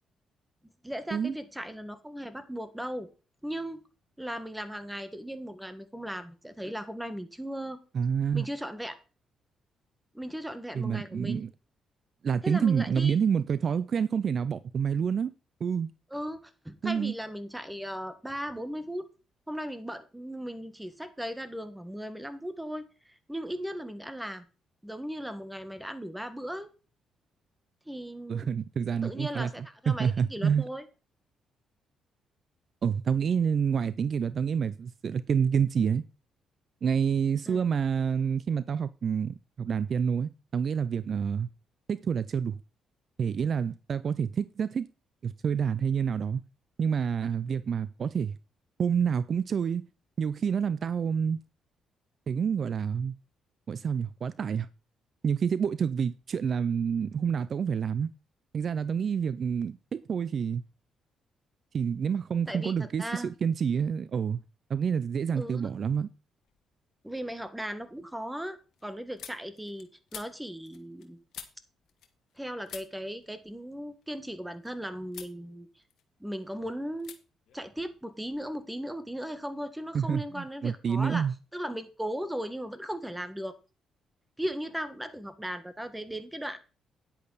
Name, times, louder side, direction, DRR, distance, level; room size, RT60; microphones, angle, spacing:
voice 1, 0.8-3.1 3.4-3.8 4.2-7.8 8.3-8.9 10.1-11.5 12.4-13.2 16.1-16.4 16.6-19.0 19.5-22.9 23.3-24.4 24.8-26.7 27.9-28.5 29.0-30.8 37.4-37.6 62.5-63.3 65.3-65.7 67.0-71.2 72.4-75.7 76.2-77.1 77.5-81.2 81.5-83.5 84.4-86.6, equal, 5° right, 1.6 m, -37 dB
voice 2, 7.9-8.5 10.7-11.5 12.2-15.3 15.6-15.9 16.8-17.1 28.3-29.5 29.9-30.7 32.8-36.0 36.8-41.5 41.9-42.6 43.2-44.9 45.2-46.4 46.8-48.4 48.8-49.8 50.2-51.4 52.3-53.1 53.7-54.7 55.2-58.1 58.5-60.6 61.7-64.4 64.7-66.1 79.9-81.3, right 7 dB, 50° right, 0.5 m, -28 dB
sound 1, 66.4-67.0 67.3-72.4 72.7-74.7 75.1-75.4 75.8-76.5 77.0-77.2 77.5-78.5, left 9 dB, 75° left, 1.6 m, -50 dB
10.0 x 8.5 x 4.0 m
cardioid pair, 90°, 0 cm